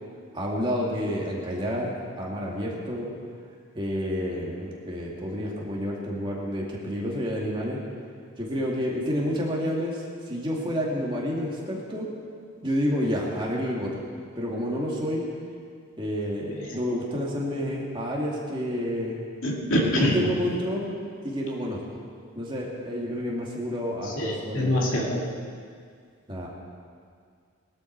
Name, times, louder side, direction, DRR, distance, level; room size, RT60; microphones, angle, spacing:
voice 1, 0.3-3.1 3.7-7.8 8.4-12.1 12.6-13.9 14.4-15.2 16.0-19.2 19.8-20.9 21.2-21.8 22.4-25.1 26.3-26.5, equal, 20° right, -3 dB, 2.4 m, -29 dB
voice 2, 19.4-20.2 24.2-25.3, equal, 70° left, -2 dB, 2.4 m, -25 dB
21.0 x 12.5 x 4.7 m, 2.1 s
head